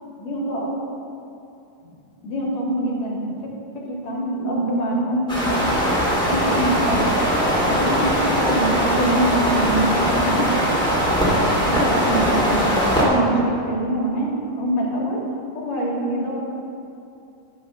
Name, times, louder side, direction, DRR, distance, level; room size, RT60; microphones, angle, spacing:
voice 1, 0.2-0.8 2.2-5.9 6.2-7.1 7.4-10.5 11.0-15.2 15.5-16.4, right 1 dB, 65° left, -2 dB, 2.5 m, -25 dB
sound 1, 5.3-13.0, equal, 5° left, 0.8 m, -20 dB
9.4 x 5.7 x 6.7 m, 2.7 s
omnidirectional pair, 4.5 m